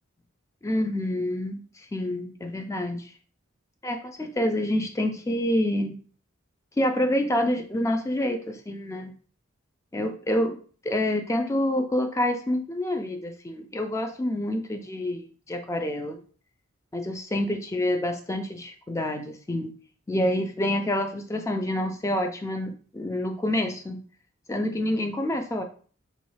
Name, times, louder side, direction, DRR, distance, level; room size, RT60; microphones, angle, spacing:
voice 1, 0.6-1.6 1.9-3.1 3.8-6.0 6.8-9.1 9.9-10.6 10.8-16.2 16.9-19.7 20.1-24.0 24.5-25.6, left 1 dB, 15° left, 5 dB, 0.3 m, -27 dB
3.0 x 2.3 x 3.2 m, 0.42 s
head